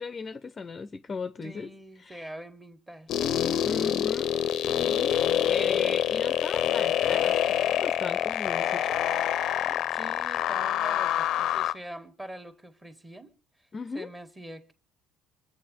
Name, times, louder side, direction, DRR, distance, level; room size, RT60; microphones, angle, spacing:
voice 1, 0.0-1.7 2.1-2.3 3.6-5.2 5.5-9.0 13.7-14.1, left 4 dB, 30° left, 0.8 m, -37 dB
voice 2, 1.4-3.3 9.7-13.3 13.6-13.7 13.9-14.7, right 1 dB, 15° right, 1.9 m, -44 dB
sound 1, 3.1-11.7, left 11 dB, 65° left, 0.7 m, -26 dB
24.5 x 8.4 x 5.4 m
cardioid pair, 100°, 0 cm